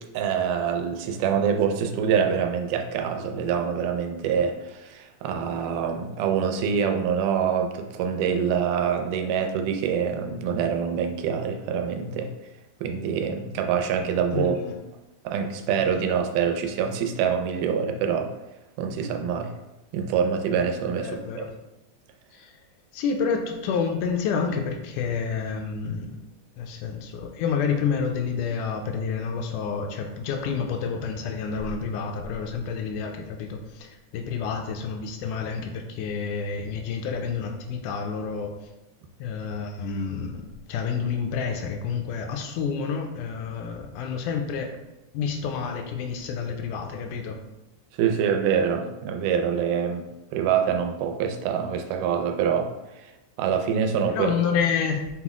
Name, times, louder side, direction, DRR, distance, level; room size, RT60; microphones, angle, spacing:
voice 1, 0.1-12.3 12.8-14.6 15.3-18.3 18.8-19.5 19.9-21.5 48.0-50.1 50.3-52.7 53.0-53.1 53.4-54.3, right 7 dB, 85° right, 5 dB, 2.1 m, -25 dB
voice 2, 14.3-14.7 21.0-21.5 22.3-22.6 22.9-26.2 26.6-38.5 39.2-40.4 40.7-44.7 45.1-47.4 54.1-55.2, left 6 dB, 80° left, 3 dB, 2.0 m, -29 dB
5.9 x 2.0 x 3.5 m, 0.98 s
omnidirectional pair, 3.6 m